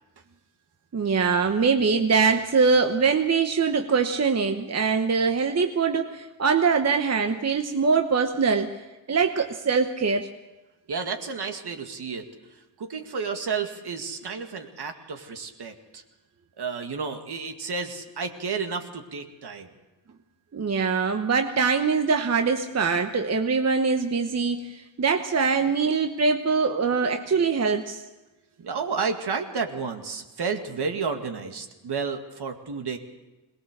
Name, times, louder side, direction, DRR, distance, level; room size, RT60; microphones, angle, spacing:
voice 1, 0.9-8.7 9.1-10.3 20.5-28.0, right 5 dB, 35° right, 5 dB, 1.1 m, -23 dB
voice 2, 10.9-16.0 16.6-19.7 27.2-27.5 28.6-33.0, right 5 dB, 60° right, 5 dB, 2.1 m, -31 dB
21.5 x 19.0 x 6.7 m, 1.1 s
cardioid pair, 85°, 45 cm